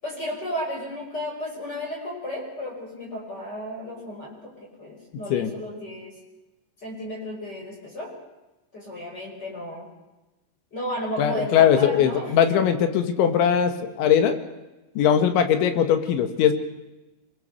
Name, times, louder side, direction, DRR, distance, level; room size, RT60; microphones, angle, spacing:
voice 1, 0.0-6.2 6.8-8.1 8.7-9.9 10.7-12.6, left 1 dB, 20° left, 0 dB, 5.6 m, -33 dB
voice 2, 11.2-14.4 15.0-16.5, left 8 dB, 80° left, 8 dB, 4.0 m, -20 dB
24.5 x 22.0 x 6.9 m, 1.0 s
omnidirectional pair, 5.3 m